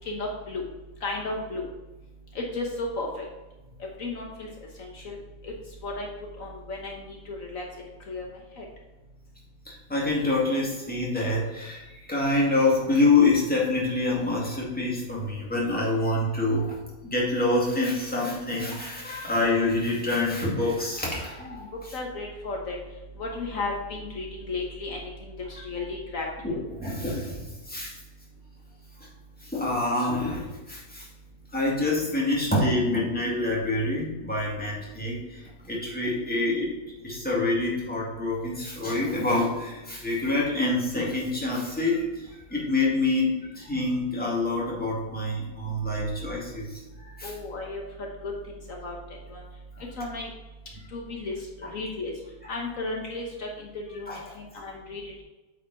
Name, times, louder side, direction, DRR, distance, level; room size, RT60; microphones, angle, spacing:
voice 1, 0.1-0.6 1.0-1.6 2.3-3.2 4.0-4.5 4.8-5.2 5.4-5.5 5.8-6.1 6.4-7.6 8.1-8.2 8.6-8.7 21.4-21.6 21.9-22.8 23.2-26.6 47.2-47.8 48.2-49.0 49.3-49.4 50.0-50.3 50.9-51.4 51.7-52.1 52.5-54.1 54.4-55.2, left 2 dB, 65° left, 0 dB, 1.5 m, -34 dB
voice 2, 9.7-22.0 25.8-25.9 26.4-27.9 29.4-31.1 31.5-36.7 37.0-47.3 51.6-51.7 54.1-54.2, left 2 dB, 5° left, -5 dB, 2.0 m, -26 dB
8.8 x 5.1 x 4.0 m, 1.1 s
omnidirectional pair, 1.6 m